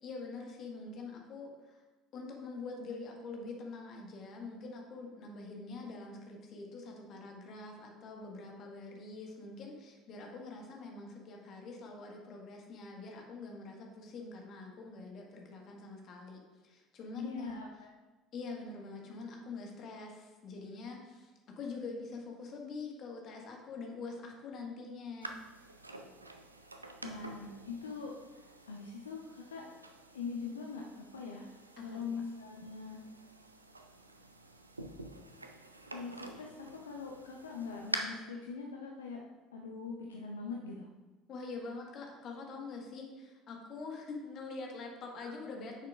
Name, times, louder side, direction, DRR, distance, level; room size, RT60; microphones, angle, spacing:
voice 1, 0.0-1.8 2.1-17.7 18.3-25.4 31.8-32.0 41.3-45.9, left 3 dB, 45° left, 1 dB, 1.5 m, -45 dB
voice 2, 17.1-18.0 27.0-29.6 30.1-31.5 31.8-33.0 35.9-39.2 39.5-40.9, left 5 dB, 75° left, 0 dB, 0.6 m, -42 dB
sound 1, 25.2-38.0, right 2 dB, 90° right, 0.4 m, -47 dB
9.5 x 6.5 x 2.4 m, 1.2 s
figure-of-eight pair, 60°, 0 cm